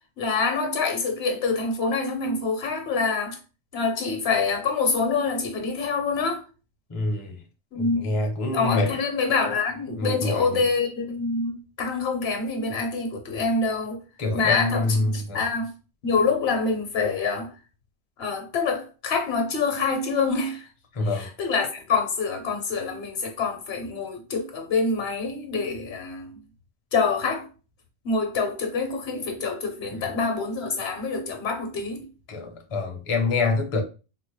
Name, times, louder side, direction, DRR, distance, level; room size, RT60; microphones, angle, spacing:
voice 1, 0.2-3.4 3.7-6.4 7.7-8.2 8.5-14.0 14.3-15.7 16.0-17.5 18.2-20.7 21.1-26.4 26.9-27.5 28.0-32.1, left 4 dB, 65° left, 0.9 m, -26 dB
voice 2, 6.9-7.4 7.7-8.9 10.0-10.6 14.2-15.4 20.9-21.3 29.9-30.1 32.3-33.8, left 3 dB, 35° left, 0.6 m, -26 dB
3.9 x 2.0 x 3.0 m
omnidirectional pair, 1.2 m